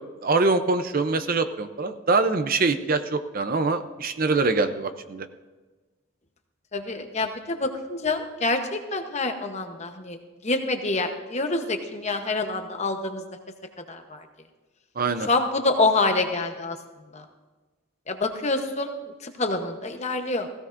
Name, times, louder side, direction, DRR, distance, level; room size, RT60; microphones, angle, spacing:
voice 1, 0.2-5.3 15.0-15.3, right 3 dB, 40° right, 9 dB, 0.6 m, -24 dB
voice 2, 6.7-10.2 10.4-13.2 13.9-14.3 15.3-16.8 17.1-17.2 18.1-18.9 19.2-20.5, left 3 dB, 30° left, 6 dB, 0.9 m, -26 dB
17.0 x 16.0 x 2.6 m, 1.3 s
head